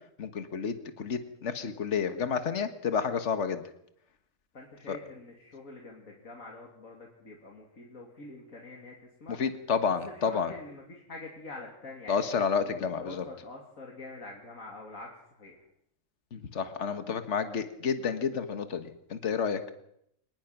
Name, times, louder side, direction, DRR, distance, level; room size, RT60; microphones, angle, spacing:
voice 1, 0.2-3.6 4.9-5.0 9.4-10.5 12.1-13.2 16.3-19.6, left 6 dB, 60° left, 9 dB, 1.7 m, -30 dB
voice 2, 4.5-9.4 10.1-12.3 13.0-15.6, left 2 dB, 85° left, 0 dB, 3.2 m, -46 dB
25.0 x 20.0 x 6.0 m, 0.74 s
omnidirectional pair, 1.4 m